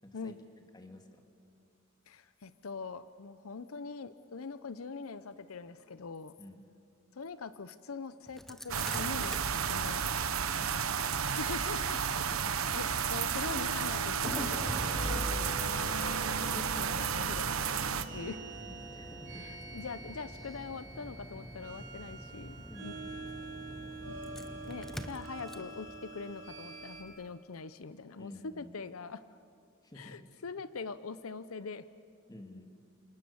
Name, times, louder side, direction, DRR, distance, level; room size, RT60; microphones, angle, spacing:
voice 1, 0.0-0.4 0.7-1.2 6.4-6.6 10.5-11.1 12.1-12.7 16.5-16.7 18.7-19.5 22.7-23.0 28.2-28.7 29.8-30.3 32.3-32.7, left 1 dB, 20° left, 4 dB, 2.2 m, -51 dB
voice 2, 2.1-6.4 7.1-10.1 11.3-12.0 12.7-14.7 15.1-18.4 19.4-22.9 24.1-29.2 30.0-31.9, left 4 dB, 90° left, 14 dB, 0.7 m, -43 dB
Engine starting, 8.3-27.2, equal, ahead, 0.9 m, -45 dB
sound 1, 8.7-18.0, right 7 dB, 85° right, 1.1 m, -32 dB
sound 2, 10.0-27.0, right 2 dB, 70° right, 4.8 m, -46 dB
28.5 x 26.5 x 7.1 m, 2.5 s
head